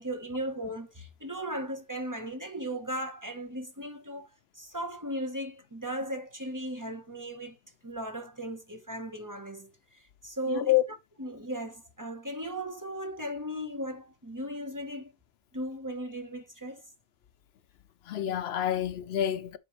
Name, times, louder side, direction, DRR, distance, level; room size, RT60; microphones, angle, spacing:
voice 1, 0.0-4.3 4.6-7.6 7.8-9.7 10.2-10.7 11.2-15.1 15.5-16.8, right 1 dB, 20° right, 0.8 m, -36 dB
voice 2, 10.5-10.8 18.0-19.6, left 12 dB, 80° left, 0.9 m, -27 dB
8.2 x 4.7 x 3.0 m
omnidirectional pair, 1.0 m